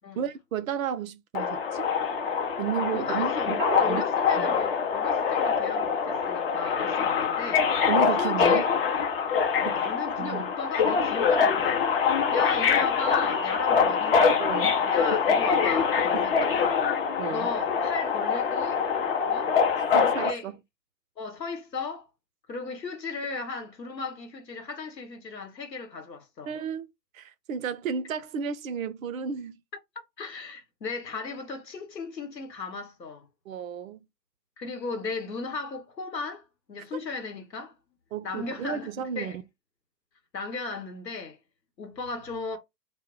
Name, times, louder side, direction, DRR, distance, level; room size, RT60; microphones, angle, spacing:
voice 1, 0.2-1.9 2.6-4.0 4.4-4.5 7.9-8.7 9.6-9.9 10.2-10.5 14.4-14.8 16.1-16.3 17.2-17.5 19.8-20.6 26.5-26.9 27.1-29.6 33.5-34.0 38.1-39.4, right 8 dB, 55° right, 0.5 m, -33 dB
Subway metro underground, 1.3-20.3, left 6 dB, 40° left, 0.5 m, -24 dB
voice 2, 2.9-7.7 8.1-8.7 9.5-11.9 12.3-16.9 17.3-18.9 19.3-19.6 19.9-20.5 21.2-22.1 22.5-26.5 30.2-33.3 34.6-36.4 36.7-37.8 38.2-39.4 40.3-41.4 41.8-42.6, left 4 dB, 90° left, 0.9 m, -36 dB
2.1 x 2.0 x 3.6 m
figure-of-eight pair, 115°, 50 cm